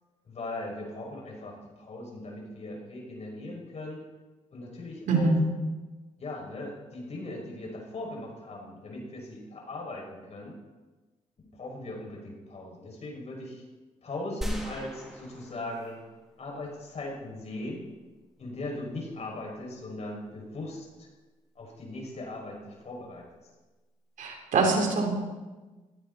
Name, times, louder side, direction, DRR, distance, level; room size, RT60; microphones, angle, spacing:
voice 1, 0.3-4.0 4.5-5.3 6.2-10.5 11.4-13.6 14.0-16.0 16.4-17.8 18.4-21.1 21.6-23.2, left 2 dB, 55° left, -1 dB, 6.3 m, -39 dB
voice 2, 5.1-5.4 24.2-25.1, right 3 dB, 80° right, 2 dB, 3.9 m, -24 dB
sound 1, 14.4-16.3 16.7-16.8, equal, ahead, 4.3 m, -38 dB
18.0 x 16.5 x 4.3 m, 1.2 s
cardioid pair, 75°, 13 cm